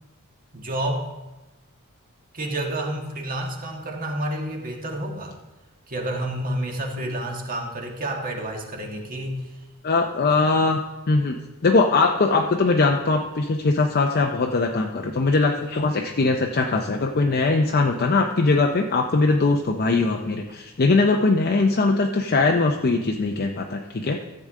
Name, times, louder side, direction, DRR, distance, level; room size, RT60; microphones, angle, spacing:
voice 1, 0.5-1.1 2.3-5.4 5.9-9.4, right 1 dB, 40° right, 1 dB, 1.5 m, -29 dB
voice 2, 9.8-10.8 11.1-24.2, left 3 dB, 45° left, 3 dB, 0.6 m, -21 dB
14.0 x 7.8 x 3.6 m, 1.1 s
head